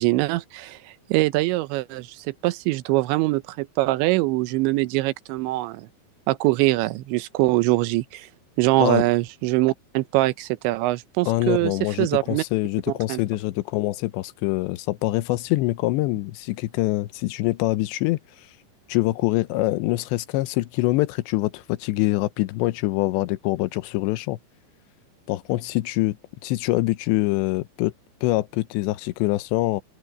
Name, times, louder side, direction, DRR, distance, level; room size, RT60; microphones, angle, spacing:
voice 1, 0.0-5.9 6.3-8.3 8.6-12.4 13.1-13.2, right 19 dB, 90° right, 3.1 m, -23 dB
voice 2, 11.3-18.2 18.9-24.4 25.3-26.2 26.4-27.9 28.2-29.8, left 18 dB, 80° left, 2.9 m, -24 dB
omnidirectional pair, 5.1 m